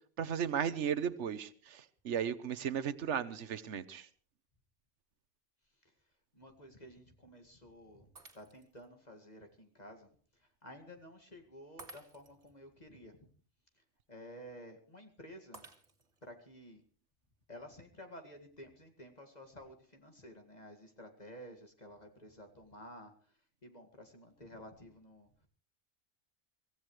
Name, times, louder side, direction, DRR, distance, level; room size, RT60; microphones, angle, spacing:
voice 1, 0.2-4.1, right 8 dB, 85° right, 13 dB, 1.2 m, -35 dB
voice 2, 5.7-8.1 8.3-13.3 13.7-15.6 16.2-16.8 17.5-25.5, equal, 35° left, 5 dB, 2.2 m, -53 dB
Shatter, 8.2-8.9 9.4-9.5 11.8-12.5 15.5-16.3, right 2 dB, 55° right, 2.4 m, -54 dB
24.5 x 16.5 x 3.2 m, 0.44 s
omnidirectional pair, 1.2 m